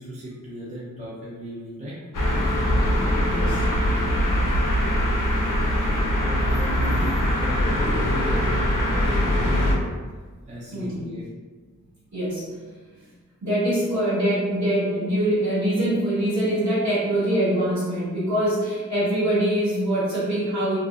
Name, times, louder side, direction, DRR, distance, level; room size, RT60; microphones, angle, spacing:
voice 1, 0.0-2.1 4.9-5.5 6.2-7.8 8.1-10.1 10.5-11.2, right 1 dB, 25° right, -7 dB, 0.5 m, -36 dB
sound 1, 2.1-9.8, equal, 80° left, 0.5 m, -22 dB
voice 2, 2.9-3.6 10.7-11.0 12.1-12.6 13.4-20.8, right 1 dB, 60° right, -11 dB, 1.4 m, -24 dB
2.6 x 2.0 x 2.3 m, 1.4 s
wide cardioid pair, 70°, 31 cm